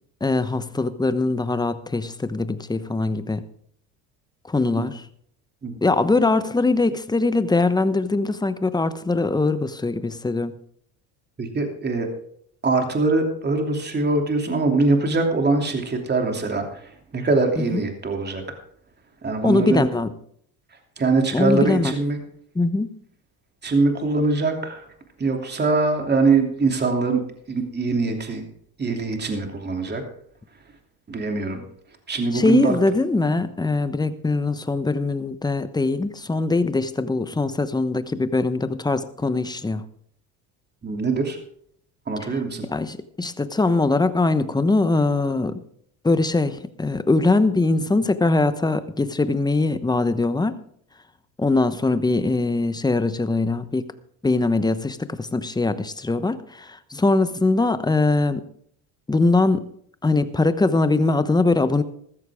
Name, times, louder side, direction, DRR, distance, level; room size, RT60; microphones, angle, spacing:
voice 1, 0.2-3.4 4.5-5.0 5.8-10.5 17.6-17.8 19.4-20.1 21.3-21.9 22.5-22.9 32.3-39.8 42.7-45.6 46.0-50.6 51.4-53.8 54.2-58.4 59.1-59.7 60.0-61.8, left 3 dB, 10° left, 12 dB, 1.0 m, -22 dB
voice 2, 11.4-12.1 12.6-18.4 19.2-19.8 21.0-22.2 23.6-24.8 25.2-27.2 27.5-28.4 28.8-30.0 31.1-31.6 32.1-32.8 40.8-41.4 42.1-42.7, right 3 dB, 25° right, 4 dB, 2.9 m, -22 dB
15.0 x 13.5 x 3.6 m, 0.65 s
supercardioid pair, 95°, 40 cm